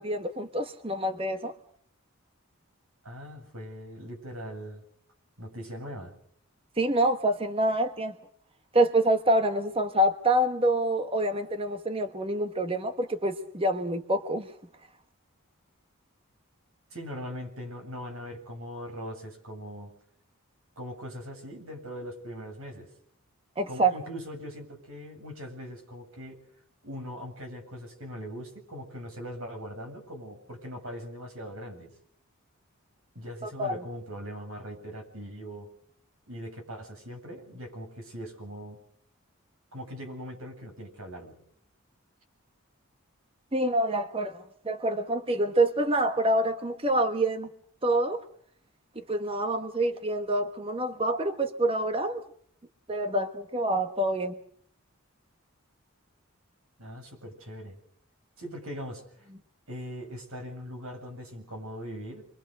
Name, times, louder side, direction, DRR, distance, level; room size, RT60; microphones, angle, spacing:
voice 1, 0.0-1.5 6.8-8.2 8.7-14.5 23.6-23.9 33.4-33.8 43.5-47.5 47.8-48.2 49.1-52.2 52.9-54.3, right 1 dB, 25° right, 7 dB, 1.1 m, -26 dB
voice 2, 3.0-4.8 5.4-6.1 16.9-19.9 20.8-22.9 23.7-26.4 26.8-31.9 33.1-35.7 36.3-38.8 39.7-41.4 56.8-57.8 58.4-59.3 59.7-62.2, equal, 75° right, 3 dB, 7.8 m, -40 dB
27.5 x 24.0 x 6.6 m, 0.64 s
head